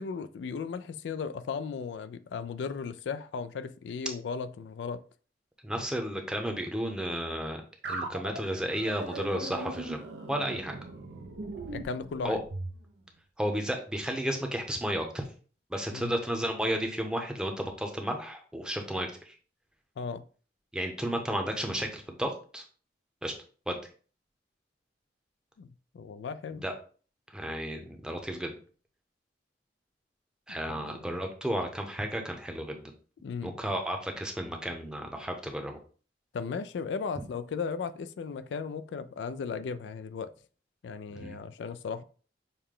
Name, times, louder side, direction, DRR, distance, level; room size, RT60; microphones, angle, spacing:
voice 1, 0.0-5.0 11.7-12.4 15.9-16.2 20.0-20.2 25.6-26.6 30.7-31.0 33.2-33.5 36.3-40.3 40.8-42.0, left 5 dB, 85° left, 0.3 m, -36 dB
voice 2, 5.6-7.6 7.9-10.0 10.3-10.8 12.2-12.4 13.4-15.2 15.7-19.3 20.7-22.6 23.2-23.3 23.7-23.8 26.6-26.7 27.3-28.5 30.5-32.9 33.4-35.8 41.1-41.4, equal, 5° right, 0.7 m, -33 dB
sound 1, 7.8-12.8, right 2 dB, 75° right, 0.6 m, -39 dB
6.5 x 2.2 x 3.7 m
head